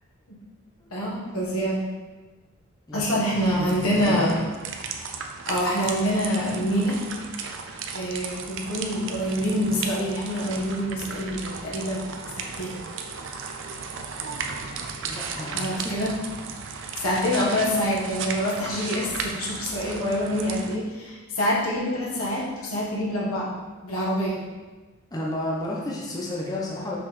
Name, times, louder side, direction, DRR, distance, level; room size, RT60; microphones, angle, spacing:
voice 1, 0.9-1.8 2.9-4.4 5.5-7.0 7.9-12.8 15.5-16.1 16.9-23.5 23.8-24.4, equal, 80° left, -5 dB, 1.6 m, -26 dB
voice 2, 2.9-4.4 15.0-15.9 25.1-27.0, left 1 dB, 15° left, -4 dB, 0.7 m, -32 dB
sound 1, 3.3-20.7, right 5 dB, 55° right, 0.5 m, -35 dB
5.9 x 5.3 x 3.3 m, 1.3 s
head